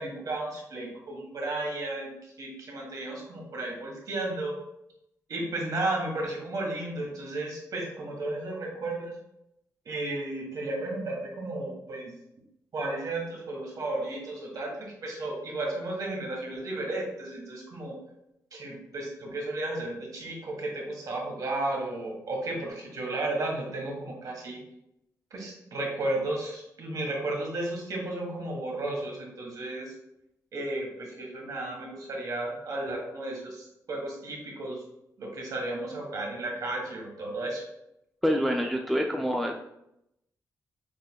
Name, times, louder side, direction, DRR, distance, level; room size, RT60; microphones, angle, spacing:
voice 1, 0.0-4.6 5.3-9.1 9.8-12.1 12.7-18.0 18.5-24.6 25.3-29.9 30.5-34.8 35.2-37.6, right 2 dB, 65° right, 0 dB, 1.4 m, -33 dB
voice 2, 38.2-39.6, equal, ahead, 2 dB, 0.4 m, -26 dB
6.5 x 3.2 x 2.3 m, 0.81 s
wide cardioid pair, 110°, 7 cm